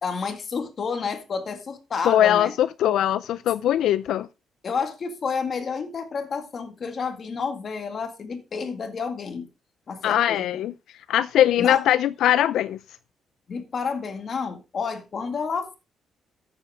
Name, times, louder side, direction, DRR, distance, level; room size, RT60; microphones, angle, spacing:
voice 1, 0.0-2.5 4.6-9.5 9.9-10.6 11.6-11.8 13.5-15.8, left 5 dB, 40° left, 2.0 m, -30 dB
voice 2, 2.0-4.3 10.0-10.7 11.1-12.8, left 11 dB, 80° left, 0.4 m, -21 dB
13.5 x 7.9 x 3.6 m
cardioid pair, 150°, 0 cm